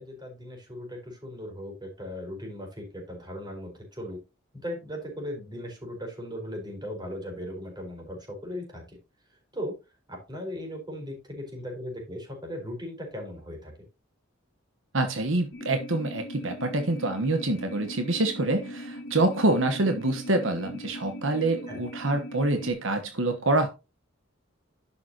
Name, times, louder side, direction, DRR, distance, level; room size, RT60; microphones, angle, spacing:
voice 1, 0.0-4.2 4.5-9.0 9.5-9.7 10.1-13.7 21.7-21.8, equal, 20° right, 1 dB, 4.7 m, -38 dB
voice 2, 14.9-23.7, right 2 dB, 70° right, 7 dB, 1.2 m, -26 dB
sound 1, 15.5-22.7, equal, 65° left, 2.0 m, -40 dB
11.0 x 7.1 x 2.9 m, 0.27 s
head